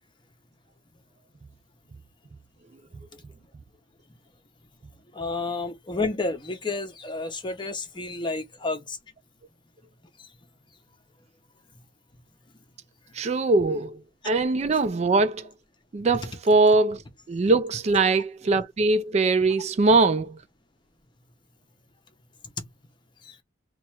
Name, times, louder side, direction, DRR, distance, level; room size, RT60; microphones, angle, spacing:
voice 1, 5.1-9.0 22.6-22.7 23.2-23.3, left 3 dB, 25° left, 0.7 m, -30 dB
voice 2, 13.1-15.5 15.9-17.0 17.3-20.4, right 3 dB, 35° right, 0.4 m, -22 dB
3.0 x 2.3 x 4.3 m
head